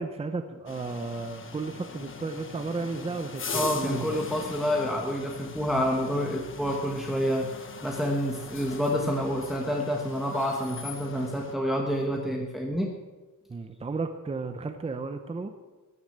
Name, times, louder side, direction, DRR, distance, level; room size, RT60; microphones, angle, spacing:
voice 1, 0.0-4.2 6.1-6.2 12.3-12.4 13.5-15.5, right 3 dB, 20° right, 7 dB, 0.8 m, -34 dB
sound 1, 0.7-11.6, left 5 dB, 35° left, 1.2 m, -40 dB
voice 2, 3.5-7.5 7.8-12.9, equal, ahead, -1 dB, 1.2 m, -28 dB
14.5 x 9.8 x 7.4 m, 1.2 s
wide cardioid pair, 175°, 33 cm